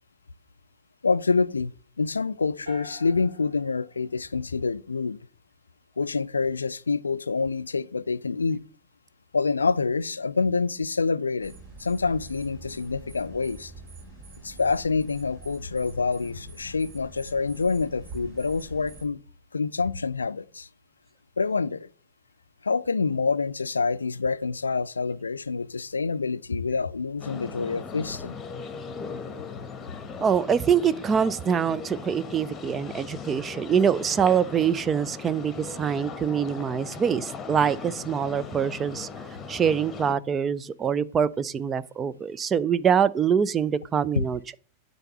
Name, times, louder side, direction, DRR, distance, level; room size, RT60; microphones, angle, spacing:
voice 1, 1.0-5.2 6.0-8.6 9.3-11.5 11.8-13.7 14.4-19.2 19.5-20.7 21.4-21.9 22.6-28.4 44.1-44.2, left 4 dB, 75° left, 0.3 m, -27 dB
sound 1, 2.7-4.9, left 3 dB, 65° right, 2.3 m, -45 dB
sound 2, 11.4-19.1, right 3 dB, 40° right, 3.9 m, -45 dB
sound 3, 27.2-40.1, left 5 dB, 20° left, 1.2 m, -39 dB
voice 2, 30.2-39.1 39.5-44.5, right 7 dB, 25° right, 0.4 m, -24 dB
9.1 x 4.1 x 6.7 m
figure-of-eight pair, 90°, 0 cm